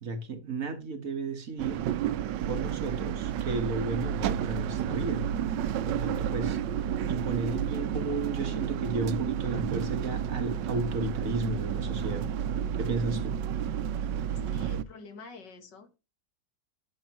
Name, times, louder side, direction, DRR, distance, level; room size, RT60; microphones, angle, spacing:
voice 1, 0.0-1.8 2.5-5.2 5.8-6.6 7.1-12.3 12.8-13.3, right 3 dB, 50° right, 1.7 m, -33 dB
sound 1, 1.6-14.8, right 9 dB, 85° right, 1.3 m, -31 dB
voice 2, 14.3-16.0, left 4 dB, 75° left, 2.2 m, -48 dB
11.0 x 7.1 x 3.0 m
omnidirectional pair, 1.9 m